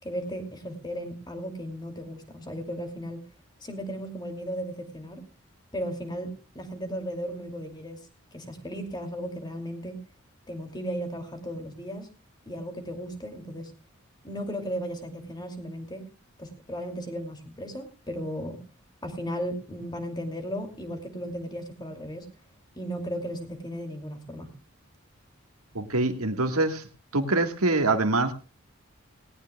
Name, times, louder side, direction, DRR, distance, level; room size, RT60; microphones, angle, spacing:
voice 1, 0.0-3.2 3.6-5.2 5.7-8.1 8.3-10.0 10.5-12.1 12.5-13.7 14.2-16.0 16.4-18.6 19.0-22.3 22.7-24.5, equal, 20° left, 5 dB, 2.6 m, -35 dB
voice 2, 25.7-26.9 27.1-28.3, right 2 dB, 90° right, 7 dB, 1.7 m, -24 dB
18.5 x 18.0 x 2.3 m, 0.33 s
head